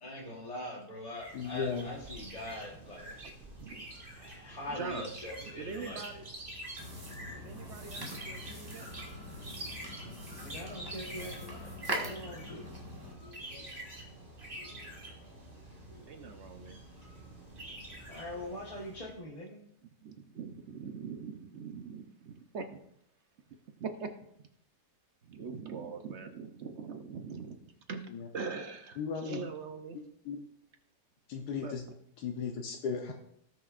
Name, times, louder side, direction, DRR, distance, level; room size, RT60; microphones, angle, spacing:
voice 1, 0.0-3.1 4.2-6.0 7.1-7.2 10.0-10.1 10.4-12.7 13.2-13.7 14.5-14.8 15.9-16.3 18.1-19.6, left 1 dB, 25° left, -4 dB, 1.2 m, -43 dB
sound 1, 1.1-19.2, right 1 dB, 35° right, 2.1 m, -47 dB
voice 2, 1.3-1.9 28.1-28.3 29.0-29.4 30.2-30.4 31.3-31.8 32.2-33.1, left 6 dB, 85° left, 2 dB, 1.4 m, -35 dB
voice 3, 4.7-5.1 5.5-6.2 7.4-8.9 13.7-13.9 16.1-16.8 20.0-22.8 23.8-24.1 25.2-30.0 31.6-31.7, right 5 dB, 55° right, 7 dB, 0.9 m, -42 dB
sound 2, 6.8-13.1, equal, 15° right, 1.4 m, -42 dB
18.0 x 6.2 x 2.5 m, 0.72 s
omnidirectional pair, 1.7 m